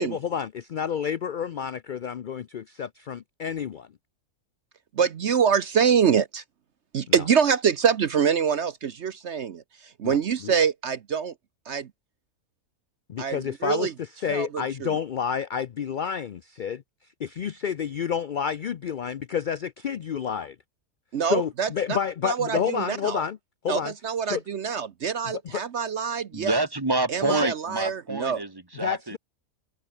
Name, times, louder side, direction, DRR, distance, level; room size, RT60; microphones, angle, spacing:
voice 1, 0.0-3.8 10.0-10.2 10.4-10.5 13.1-16.8 17.2-20.6 21.2-23.4 23.6-23.9 24.3-24.4 25.2-25.6 27.3-27.4 28.8-29.2, left 7 dB, 70° left, 0.4 m, -29 dB
voice 2, 4.9-6.4 6.9-11.3 11.7-11.9 13.2-13.9 14.3-15.0 21.1-22.0 22.2-23.2 23.7-26.6 27.1-28.4, right 7 dB, 55° right, 1.0 m, -25 dB
voice 3, 26.3-29.2, right 2 dB, 15° right, 1.5 m, -27 dB
omnidirectional pair, 1.5 m